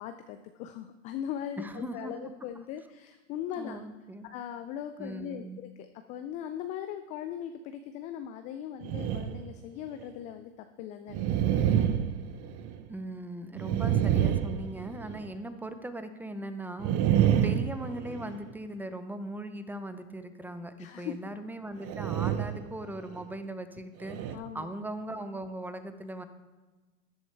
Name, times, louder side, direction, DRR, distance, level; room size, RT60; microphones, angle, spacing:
voice 1, 0.0-3.8 4.3-11.9 17.0-17.2 20.8-21.1 24.3-24.7, left 10 dB, 20° left, 8 dB, 0.3 m, -39 dB
voice 2, 1.6-2.1 3.6-4.3 5.0-5.6 12.9-26.3, right 1 dB, 5° right, 10 dB, 0.7 m, -39 dB
sound 1, 8.8-9.5 10.0-10.1 11.1-12.9 13.5-15.3 16.8-18.5 21.8-22.7 23.1-23.2 24.0-24.4, right 10 dB, 35° right, 0.8 m, -28 dB
13.5 x 11.0 x 3.4 m, 1.2 s
hypercardioid pair, 105°, 39 cm